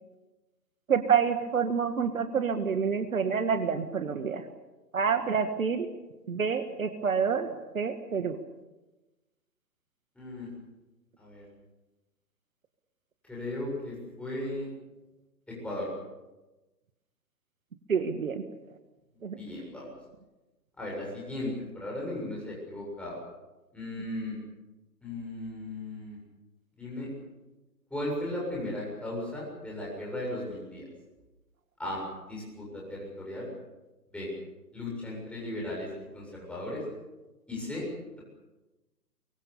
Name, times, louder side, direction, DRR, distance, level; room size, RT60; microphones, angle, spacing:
voice 1, 0.9-4.4 4.9-5.9 6.3-8.4 17.9-18.4 19.2-19.4, right 6 dB, 55° right, 9 dB, 1.7 m, -28 dB
voice 2, 10.2-10.5 11.2-11.4 13.3-14.7 15.5-15.9 19.4-19.9 20.8-23.2 23.7-24.4 25.0-26.2 26.8-27.1 27.9-30.9 31.8-33.5 34.1-34.3 34.7-35.9 36.1-36.8 37.5-37.9, left 1 dB, ahead, -4 dB, 7.5 m, -36 dB
24.0 x 23.5 x 7.0 m, 1.1 s
figure-of-eight pair, 130°, 49 cm